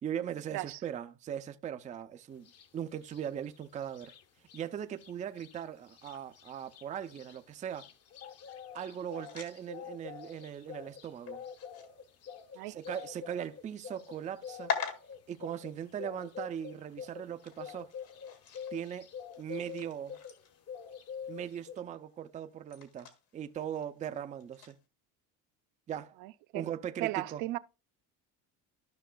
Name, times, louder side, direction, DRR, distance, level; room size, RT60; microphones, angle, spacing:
voice 1, 0.0-4.1 4.5-7.9 8.7-11.4 12.7-14.7 15.3-17.9 18.7-19.1 19.4-20.2 21.3-24.8 25.9-26.2 26.5-27.4, right 9 dB, 20° right, 0.4 m, -39 dB
sound 1, 2.4-2.7 3.0-4.6 5.0-5.1 5.4-20.4 20.7-21.8, left 7 dB, 40° left, 0.8 m, -46 dB
sound 2, 6.0-24.8, left 7 dB, 70° left, 1.8 m, -47 dB
voice 2, 26.2-26.7 27.0-27.6, right 18 dB, 70° right, 0.5 m, -36 dB
13.5 x 5.8 x 2.2 m
cardioid pair, 145°, 37 cm